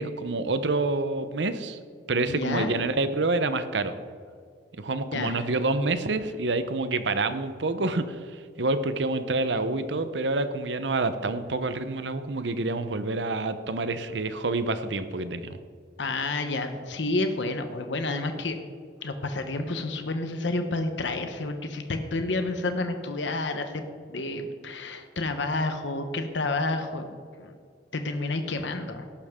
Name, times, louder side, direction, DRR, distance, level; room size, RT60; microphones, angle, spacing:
voice 1, 0.0-1.8 2.1-3.9 4.8-15.6, right 2 dB, 80° right, 11 dB, 0.8 m, -27 dB
voice 2, 2.3-2.8 5.1-5.5 16.0-18.6 19.0-23.8 24.1-27.6 27.9-29.0, left 2 dB, 85° left, 7 dB, 1.0 m, -30 dB
14.5 x 11.5 x 3.7 m, 2.1 s
head